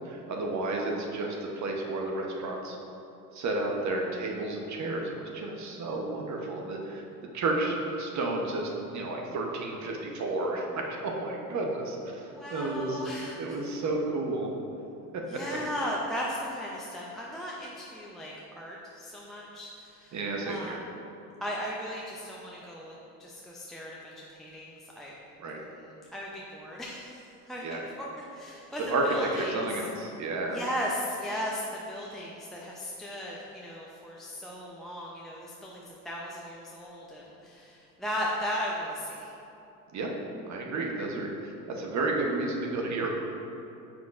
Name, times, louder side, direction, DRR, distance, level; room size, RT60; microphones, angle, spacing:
voice 1, 0.0-2.8 3.3-7.0 7.3-13.0 13.3-14.5 15.1-15.2 20.1-20.8 25.4-25.6 27.6-27.8 28.8-30.6 39.9-40.1 40.5-43.1, right 2 dB, 35° right, 0 dB, 1.0 m, -31 dB
voice 2, 12.3-13.4 15.3-20.2 20.5-20.8 21.4-22.9 23.2-25.1 26.1-27.2 27.5-28.1 28.3-29.6 30.5-39.3, equal, ahead, -5 dB, 0.6 m, -36 dB
7.3 x 5.7 x 2.5 m, 2.8 s
hypercardioid pair, 70°, 48 cm